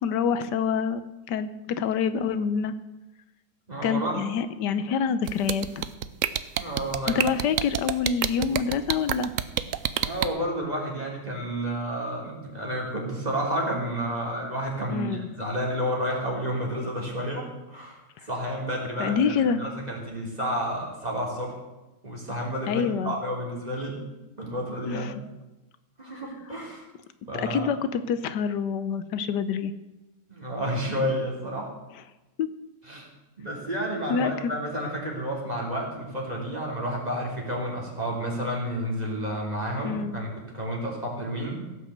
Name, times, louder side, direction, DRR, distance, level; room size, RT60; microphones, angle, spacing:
voice 1, 0.0-1.0 1.3-2.7 3.8-5.9 7.1-9.3 14.9-15.3 19.0-19.6 22.7-23.1 24.8-25.2 27.3-29.7 32.4-32.5 34.1-34.5 39.8-40.1, left 6 dB, 85° left, 12 dB, 1.4 m, -26 dB
voice 2, 3.7-4.2 6.6-7.2 10.0-21.6 22.0-24.0 24.4-25.2 26.0-26.9 27.2-27.7 30.3-31.7 32.9-33.1 33.4-41.6, equal, 25° right, -2 dB, 3.4 m, -31 dB
sound 1, 5.3-10.3, right 10 dB, 65° right, 0.9 m, -26 dB
16.5 x 6.3 x 8.0 m, 1.0 s
omnidirectional pair, 1.8 m